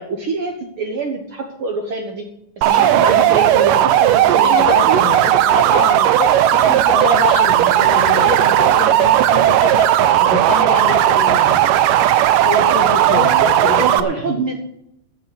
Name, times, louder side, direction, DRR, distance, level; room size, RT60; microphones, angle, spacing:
voice 1, 0.0-2.3 2.6-5.1 10.6-10.8 13.0-14.5, right 3 dB, 55° right, 3 dB, 1.7 m, -25 dB
sound 1, 2.6-14.0, right 12 dB, 90° right, 2.4 m, -14 dB
voice 2, 4.4-11.6 12.4-14.4, left 5 dB, 60° left, 4 dB, 2.3 m, -25 dB
15.0 x 5.7 x 8.6 m, 0.77 s
omnidirectional pair, 3.7 m